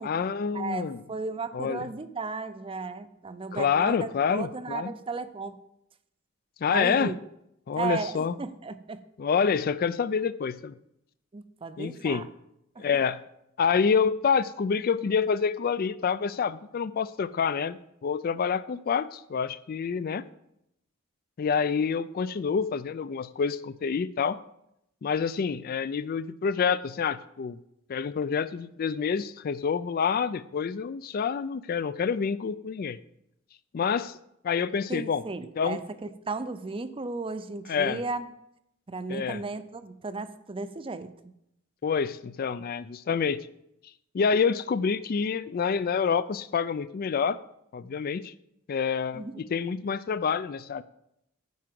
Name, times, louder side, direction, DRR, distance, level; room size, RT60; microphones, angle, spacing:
voice 1, 0.0-1.0 1.5-1.9 3.5-4.9 6.6-7.1 7.7-8.4 9.2-10.7 11.8-12.2 12.8-13.2 13.6-20.2 21.4-24.4 25.0-27.6 27.9-33.0 33.7-34.2 34.4-35.2 35.6-35.8 37.7-38.0 39.1-39.4 41.8-43.4 44.1-47.4 47.7-48.3 48.7-50.8, left 6 dB, 45° left, 16 dB, 0.3 m, -27 dB
voice 2, 0.5-5.6 6.7-7.1 7.7-9.0 11.3-12.3 12.8-12.9 34.9-38.2 38.9-41.3 49.1-49.4, right 3 dB, 25° right, 12 dB, 0.5 m, -35 dB
9.5 x 4.8 x 7.6 m, 0.79 s
head